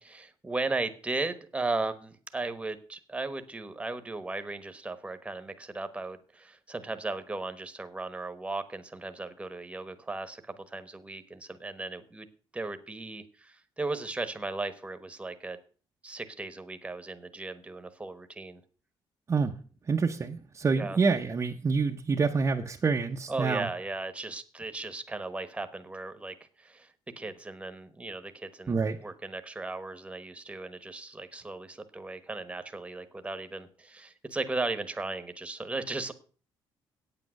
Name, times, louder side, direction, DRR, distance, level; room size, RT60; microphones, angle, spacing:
voice 1, 0.0-12.3 12.5-15.6 16.0-18.6 20.6-21.0 23.3-36.1, right 3 dB, 15° right, 10 dB, 1.1 m, -36 dB
voice 2, 19.9-23.7 28.7-29.0, right 4 dB, 30° right, 2 dB, 0.7 m, -27 dB
8.8 x 8.6 x 6.3 m, 0.40 s
cardioid pair, 125°, 9 cm